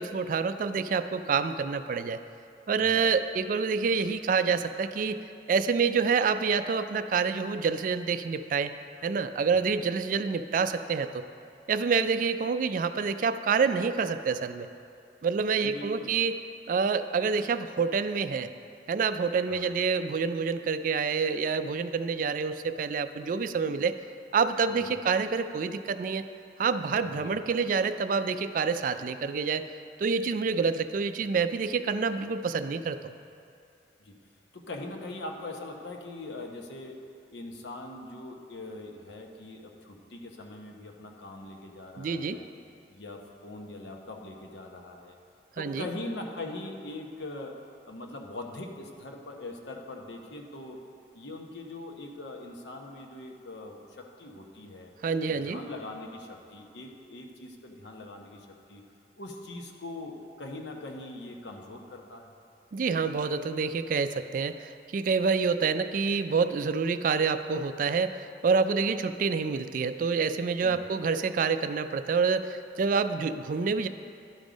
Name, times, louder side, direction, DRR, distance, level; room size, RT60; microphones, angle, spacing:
voice 1, 0.0-2.2 2.7-5.2 5.5-8.7 9.0-11.3 11.7-14.7 15.2-16.4 16.7-18.5 18.9-24.0 24.3-26.2 26.6-29.7 30.0-33.1 42.0-42.4 45.6-45.9 55.0-55.6 62.7-73.9, right 5 dB, 45° right, 11 dB, 0.3 m, -27 dB
voice 2, 2.8-3.1 9.5-9.6 15.6-16.2 19.5-19.7 24.7-24.8 27.0-27.4 34.0-34.1 34.5-36.9 37.3-42.5 42.9-45.2 45.6-47.5 47.9-50.8 51.1-54.9 55.3-58.8 59.2-62.3 70.6-70.9, left 2 dB, 75° left, 2 dB, 0.9 m, -42 dB
11.5 x 5.3 x 5.1 m, 2.5 s
head